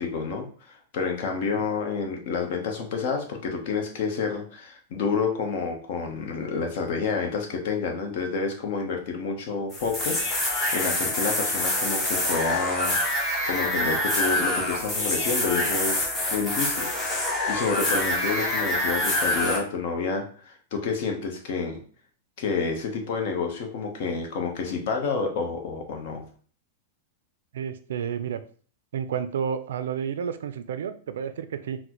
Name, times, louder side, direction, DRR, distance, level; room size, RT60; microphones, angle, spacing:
voice 1, 0.0-17.2 17.5-21.8 22.4-26.2, left 5 dB, 55° left, 2 dB, 0.8 m, -29 dB
sound 1, 9.7-19.6, left 1 dB, 15° left, 0.7 m, -26 dB
voice 2, 27.5-28.4 28.9-31.8, right 7 dB, 90° right, 11 dB, 0.3 m, -30 dB
3.9 x 2.1 x 2.9 m, 0.44 s
supercardioid pair, 160°, 0 cm